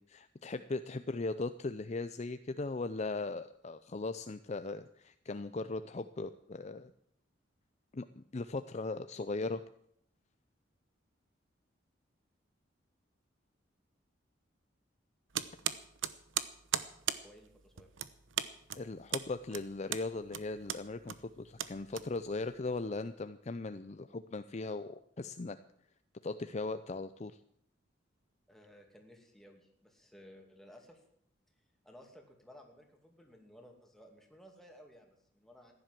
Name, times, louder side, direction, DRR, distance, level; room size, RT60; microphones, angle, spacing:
voice 1, 0.0-6.9 7.9-9.6 18.8-25.6 26.2-27.3, left 3 dB, 35° left, 11 dB, 0.5 m, -38 dB
sound 1, 15.3-22.5, right 10 dB, 85° right, 0.9 m, -38 dB
voice 2, 17.2-17.9 28.5-31.0 31.8-35.7, equal, ahead, 2 dB, 2.5 m, -57 dB
15.0 x 10.5 x 7.6 m, 0.68 s
head